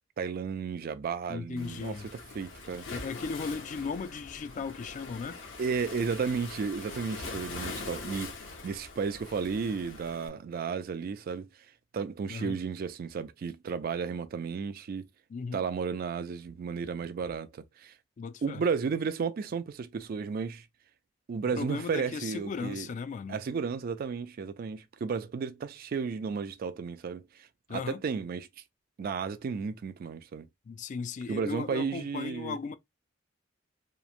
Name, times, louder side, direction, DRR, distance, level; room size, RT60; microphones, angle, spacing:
voice 1, 0.2-2.9 5.6-8.4 8.6-11.5 11.9-15.1 15.5-17.9 18.4-20.7 21.3-22.9 23.3-28.5 29.0-30.5 31.3-32.7, right 5 dB, 50° right, 0.3 m, -33 dB
voice 2, 1.3-2.1 2.9-5.4 12.3-12.6 15.3-15.7 18.2-18.6 21.6-23.4 27.7-28.0 30.7-32.7, left 5 dB, 40° left, 0.3 m, -36 dB
Waves surf, 1.6-10.3, left 3 dB, 75° left, 0.8 m, -43 dB
3.0 x 2.1 x 2.4 m
head